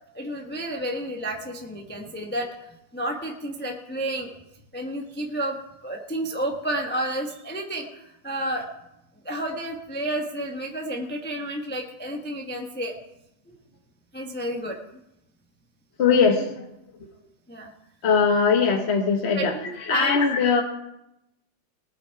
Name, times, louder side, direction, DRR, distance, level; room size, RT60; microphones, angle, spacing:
voice 1, 0.1-2.5 2.9-4.3 4.7-5.6 5.8-8.7 9.2-12.9 14.1-14.8 17.5-17.7 19.3-20.2, right 1 dB, 5° left, 0 dB, 0.8 m, -31 dB
voice 2, 16.0-16.6 18.0-20.6, left 5 dB, 45° left, 3 dB, 1.0 m, -21 dB
20.0 x 8.1 x 4.7 m, 0.87 s
omnidirectional pair, 2.2 m